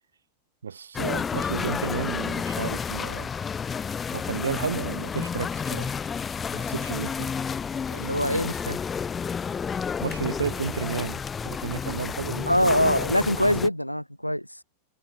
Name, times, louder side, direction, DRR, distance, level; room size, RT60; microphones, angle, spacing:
voice 1, 0.6-3.3 4.1-6.0 6.5-7.3 9.8-12.6, right 6 dB, 70° right, 1.4 m, -32 dB
sound 1, 0.9-13.7, left 6 dB, 20° left, 0.5 m, -31 dB
voice 2, 7.9-8.8 12.5-14.5, equal, 90° left, 0.8 m, -24 dB
figure-of-eight pair, 90°, 0 cm